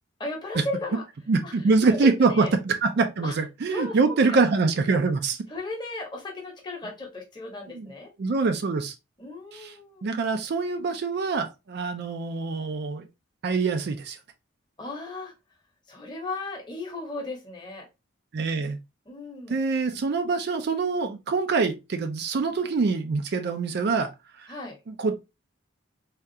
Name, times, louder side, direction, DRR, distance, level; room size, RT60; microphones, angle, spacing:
voice 1, 0.2-1.0 1.4-1.5 1.8-2.5 3.2-3.3 3.7-4.4 5.5-8.1 9.2-10.1 14.8-15.3 15.9-17.9 19.1-19.6 24.5-24.8, left 2 dB, 20° left, 0.9 m, -35 dB
voice 2, 1.3-5.4 7.7-7.9 8.2-8.9 9.5-9.7 10.0-13.1 13.4-14.2 18.3-18.8 19.5-24.1 24.4-24.5 24.9-25.1, right 4 dB, 55° right, 0.4 m, -24 dB
3.5 x 2.3 x 2.6 m
head